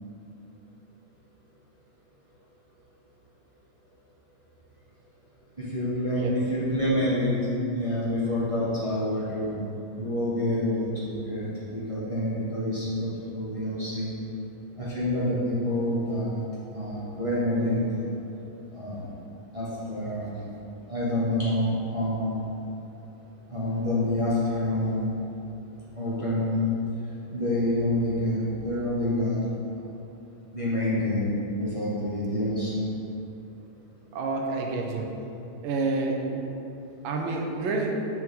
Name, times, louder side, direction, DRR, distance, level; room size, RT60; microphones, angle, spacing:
voice 1, 5.6-7.4 7.7-9.6 10.0-14.1 14.7-16.4 16.7-18.0 18.7-19.1 19.5-20.4 20.9-22.4 23.5-25.1 25.9-26.7 27.3-29.4 30.5-32.9, left 1 dB, 50° right, -9 dB, 0.4 m, -27 dB
voice 2, 34.1-35.1 35.6-36.4 37.0-38.0, right 3 dB, 80° right, 1 dB, 1.4 m, -28 dB
6.2 x 4.5 x 3.7 m, 2.8 s
omnidirectional pair, 2.3 m